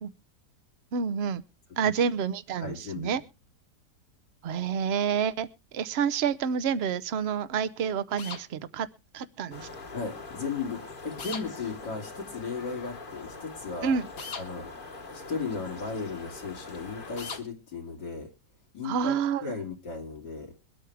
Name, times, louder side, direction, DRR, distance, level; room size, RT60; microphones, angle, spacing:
voice 1, 0.9-1.4 1.8-3.2 4.4-5.5 5.7-8.9 9.1-9.7 13.8-14.1 18.8-19.5, right 7 dB, 50° right, 15 dB, 0.8 m, -28 dB
voice 2, 2.6-3.2 9.9-13.9 14.4-14.7 15.1-18.3 18.7-20.5, left 4 dB, 80° left, 1 dB, 3.3 m, -36 dB
sound 1, 8.2-8.4 11.2-11.5 14.2-14.5 17.2-17.4, left 5 dB, 55° left, 1.9 m, -37 dB
sound 2, 9.5-17.4, left 3 dB, 35° left, 1.3 m, -43 dB
22.5 x 8.5 x 3.4 m, 0.29 s
omnidirectional pair, 1.8 m